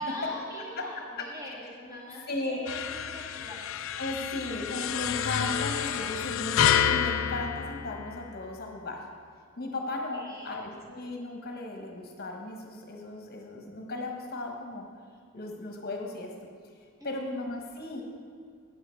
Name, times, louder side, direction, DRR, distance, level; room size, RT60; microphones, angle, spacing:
voice 1, 0.0-3.6 9.8-10.7 17.0-17.1, left 1 dB, 15° right, -6 dB, 2.2 m, -41 dB
voice 2, 2.3-2.6 4.0-9.0 9.6-14.8 15.3-16.5 17.0-18.0, left 2 dB, 45° left, 1 dB, 1.1 m, -36 dB
sound 1, 2.7-8.5, left 9 dB, 60° left, 0.3 m, -29 dB
8.6 x 7.9 x 4.5 m, 2.1 s
head